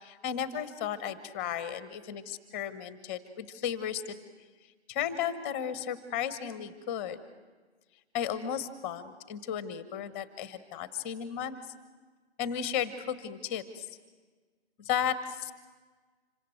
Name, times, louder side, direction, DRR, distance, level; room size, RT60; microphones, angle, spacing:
voice 1, 0.0-4.1 4.9-7.2 8.1-11.6 12.4-13.9 14.8-15.5, left 9 dB, 10° left, 14 dB, 0.8 m, -34 dB
26.5 x 24.5 x 7.8 m, 1.4 s
figure-of-eight pair, 155°, 35 cm